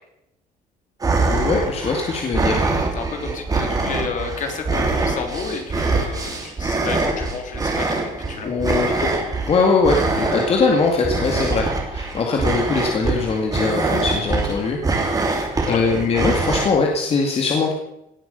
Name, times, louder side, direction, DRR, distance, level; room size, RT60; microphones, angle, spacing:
sound 1, 1.0-16.7, right 3 dB, 25° right, 3.0 m, -24 dB
voice 1, 1.3-2.6 8.4-9.1 9.5-11.7 11.9-14.8 15.7-17.7, left 4 dB, 40° left, 1 dB, 2.3 m, -21 dB
voice 2, 2.9-9.1 15.7-15.8, left 5 dB, 55° left, 4 dB, 3.2 m, -31 dB
18.0 x 9.4 x 6.9 m, 0.84 s
cardioid pair, 130°, 15 cm